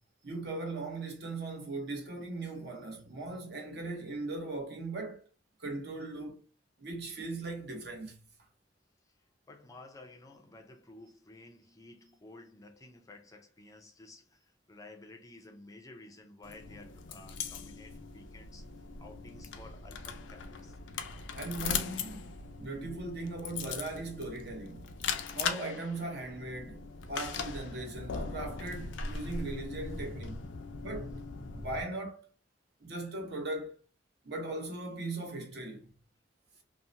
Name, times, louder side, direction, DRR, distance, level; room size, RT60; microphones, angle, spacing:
voice 1, 0.2-5.2 5.6-6.4 6.8-8.2 21.3-24.9 25.3-30.4 30.8-31.2 31.5-32.3 32.8-33.7 34.2-35.9, right 2 dB, 60° right, 0.8 m, -39 dB
voice 2, 9.5-18.7 19.0-20.8, left 2 dB, 20° left, 0.4 m, -53 dB
sound 1, 16.4-31.8, left 5 dB, 80° left, 0.4 m, -40 dB
2.7 x 2.0 x 2.5 m
head